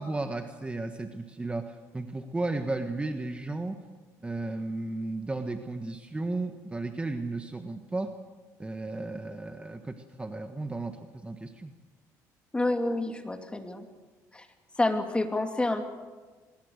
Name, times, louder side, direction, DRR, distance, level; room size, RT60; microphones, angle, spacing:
voice 1, 0.0-3.8 4.2-8.1 8.6-11.7, right 2 dB, 15° right, 6 dB, 1.4 m, -34 dB
voice 2, 12.5-13.8 14.3-14.4 14.8-15.8, left 2 dB, 15° left, 5 dB, 2.7 m, -28 dB
23.0 x 20.5 x 6.6 m, 1.3 s
cardioid pair, 90°, 7 cm